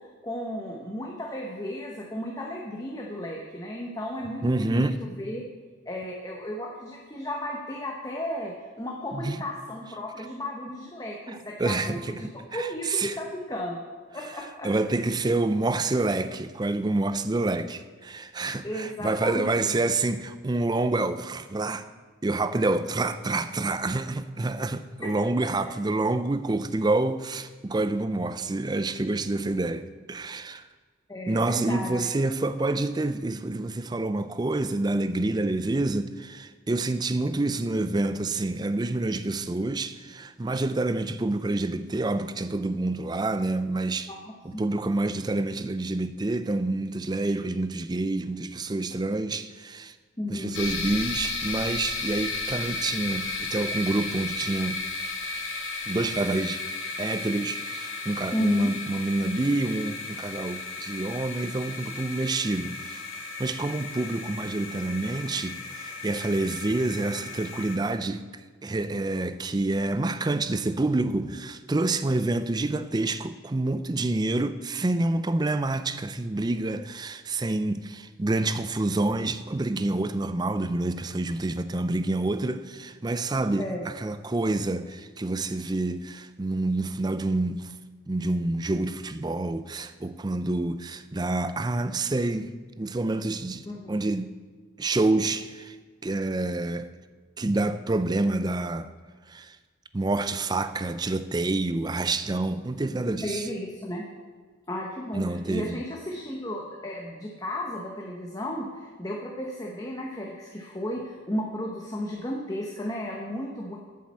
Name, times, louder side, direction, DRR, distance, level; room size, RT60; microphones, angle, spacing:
voice 1, 0.2-5.4 5.9-13.8 14.1-14.7 18.6-19.7 25.0-25.1 25.6-25.7 31.1-32.1 44.1-44.6 50.2-50.6 58.3-58.7 83.6-83.9 93.6-94.0 103.2-104.0 104.7-113.8, left 1 dB, 20° left, 0.9 m, -34 dB
voice 2, 4.4-5.0 9.1-9.4 11.6-13.1 14.6-21.9 22.2-30.7 31.3-44.1 44.4-49.9 50.3-54.8 55.9-56.6 57.0-63.0 63.4-68.2 68.6-87.7 88.1-92.5 92.8-94.3 94.8-95.8 96.0-96.9 97.4-98.9 99.3-99.6 99.9-103.5 105.1-105.8, right 2 dB, 20° right, 0.4 m, -28 dB
sound 1, 50.5-67.8, left 3 dB, 90° left, 1.7 m, -34 dB
8.6 x 7.5 x 7.3 m
head